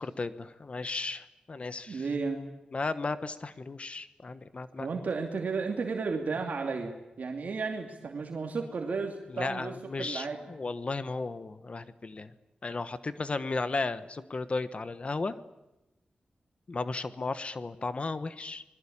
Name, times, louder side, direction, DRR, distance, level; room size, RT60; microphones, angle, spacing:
voice 1, 0.0-2.0 2.7-4.9 9.3-12.3 12.6-15.3 16.7-18.6, left 3 dB, 45° left, 13 dB, 1.2 m, -35 dB
voice 2, 1.9-2.4 4.8-10.4, right 4 dB, 70° right, 2 dB, 2.6 m, -33 dB
27.0 x 21.0 x 8.7 m, 0.97 s
wide cardioid pair, 85°, 3 cm